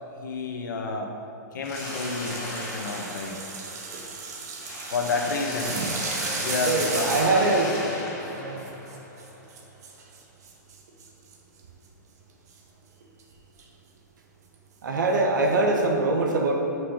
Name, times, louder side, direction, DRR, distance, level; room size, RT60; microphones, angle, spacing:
voice 1, 0.2-1.1 1.5-3.4 4.9-5.9 6.4-7.5, left 4 dB, 80° left, 2 dB, 1.3 m, -30 dB
Mechanisms, 1.6-4.2 4.6-9.4, left 2 dB, 25° left, 1.8 m, -36 dB
sound 1, 1.7-11.6 12.5-12.6 13.0-13.2 13.6-13.7 14.5-14.6 15.5-15.8, right 4 dB, 60° right, 1.3 m, -35 dB
voice 2, 6.6-7.7 8.3-8.7 14.8-16.5, right 2 dB, 85° right, 1 dB, 1.5 m, -23 dB
6.2 x 6.1 x 6.5 m, 2.6 s
hypercardioid pair, 170°, 10 cm